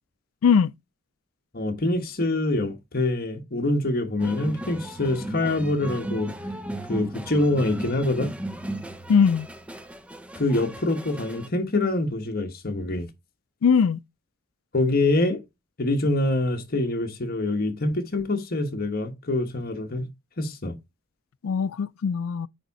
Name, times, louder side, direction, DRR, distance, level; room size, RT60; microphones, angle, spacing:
voice 1, 0.4-0.7 9.1-9.5 13.6-14.0 21.4-22.5, left 6 dB, 85° left, 0.4 m, -20 dB
voice 2, 1.5-6.3 6.9-8.3 10.3-13.1 14.7-15.4 15.8-20.1 20.4-20.8, left 2 dB, 45° left, 1.3 m, -25 dB
sound 1, 4.2-11.5, right 1 dB, 5° right, 0.6 m, -36 dB
9.3 x 3.6 x 4.1 m
head